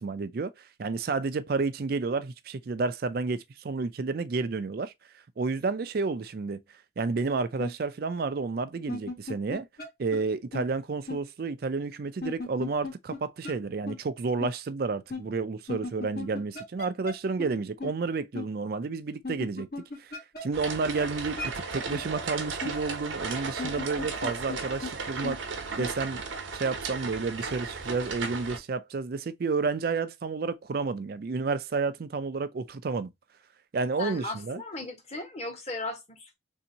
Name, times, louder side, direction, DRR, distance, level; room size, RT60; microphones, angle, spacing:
voice 1, 0.0-4.9 5.4-6.6 7.0-9.7 10.0-19.7 20.0-26.2 26.5-33.1 33.7-34.6, right 4 dB, 50° right, 0.4 m, -31 dB
sound 1, 7.6-7.7 8.7-9.9 10.1-10.2 10.5-10.6 11.1-11.2 12.2-13.2 13.4-13.5 13.9-14.0 14.4-14.5 15.1-15.2 15.7-17.1 17.4-17.5 17.8-17.9 18.3-18.5 19.2-20.7 20.9-21.0 21.4-21.5 21.9-22.0 22.6-22.7 23.5-24.6 24.8-24.9 25.2-25.4 25.8-25.9, left 3 dB, 55° left, 1.2 m, -35 dB
sound 2, 20.5-28.6, right 4 dB, 85° right, 0.8 m, -35 dB
voice 2, 34.0-36.4, left 2 dB, 35° left, 1.1 m, -37 dB
3.4 x 2.7 x 2.7 m
head